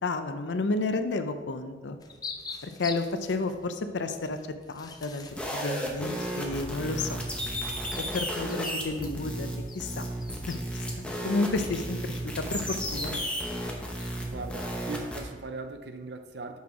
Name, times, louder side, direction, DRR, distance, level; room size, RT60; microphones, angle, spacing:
voice 1, 0.0-2.0 2.6-4.4 4.7-7.3 8.1-10.1 10.5-13.2, left 3 dB, 85° left, 8 dB, 0.6 m, -31 dB
sound 1, 2.0-15.5, left 4 dB, 20° left, 0.5 m, -48 dB
sound 2, 5.3-15.2, equal, 5° left, 0.9 m, -34 dB
voice 2, 14.3-16.6, right 3 dB, 70° right, 7 dB, 0.6 m, -39 dB
6.0 x 5.6 x 4.8 m, 1.4 s
head